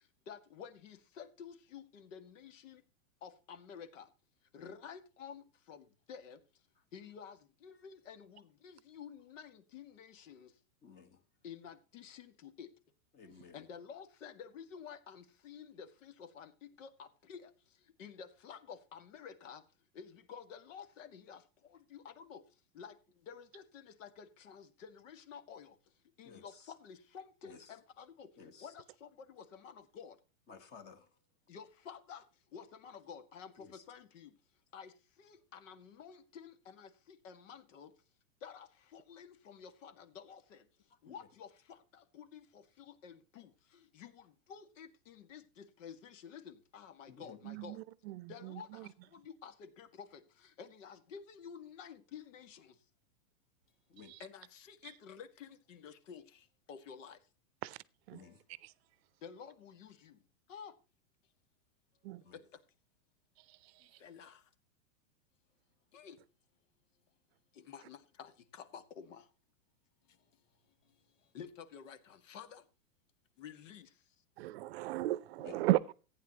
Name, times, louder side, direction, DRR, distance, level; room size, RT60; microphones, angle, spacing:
voice 1, 0.3-2.8 3.2-4.1 4.5-6.4 6.9-10.5 11.4-12.7 13.5-17.5 18.0-19.6 19.9-22.4 22.7-23.0 23.2-25.8 26.2-28.3 28.6-30.2 31.5-32.2 32.5-34.3 34.7-37.9 38.4-40.6 41.0-47.8 48.3-52.8 54.2-57.2 59.2-60.2 60.5-60.7 62.3-62.4 64.0-64.4 65.9-66.2 67.5-69.3 71.3-72.6 73.4-73.9, left 7 dB, 60° left, 2.0 m, -51 dB
voice 2, 10.8-11.2 13.1-13.7 26.2-26.7 27.4-27.8 28.4-28.7 30.5-31.2 33.6-33.8 40.9-41.3 47.1-47.4 53.9-54.2 58.1-58.4 62.2-62.4 63.8-63.9 75.4-75.7, left 6 dB, 25° left, 1.5 m, -55 dB
voice 3, 47.4-48.9 57.6-57.8 58.1-58.2 62.0-62.2 63.5-63.9 74.4-75.9, right 17 dB, 45° right, 0.8 m, -36 dB
15.0 x 9.5 x 2.9 m
supercardioid pair, 150°, 42 cm